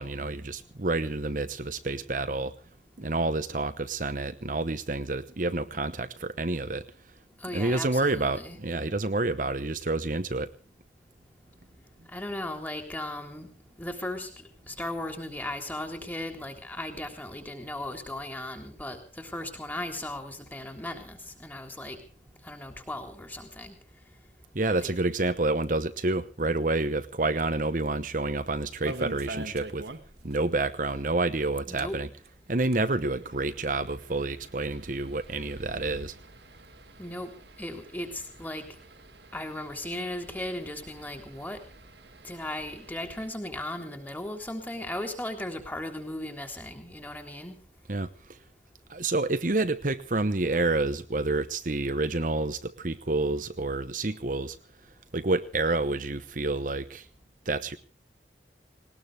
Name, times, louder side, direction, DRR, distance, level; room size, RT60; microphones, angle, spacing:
voice 1, 0.0-2.5 3.0-6.8 7.5-10.5 24.5-29.9 30.2-32.1 32.5-36.1 47.9-48.4 48.9-54.6 55.1-57.1 57.5-57.8, right 2 dB, 45° right, 11 dB, 0.9 m, -28 dB
voice 2, 7.4-8.6 12.1-13.5 13.8-22.0 22.4-23.8 24.7-24.9 31.7-32.0 37.0-37.3 37.6-38.6 39.3-41.6 42.2-47.6, left 1 dB, 10° left, 5 dB, 3.5 m, -37 dB
sound 1, 28.4-30.4 30.6-30.7 31.0-31.1 31.6-43.3, right 1 dB, 70° right, 2.3 m, -46 dB
20.0 x 19.5 x 3.5 m, 0.38 s
head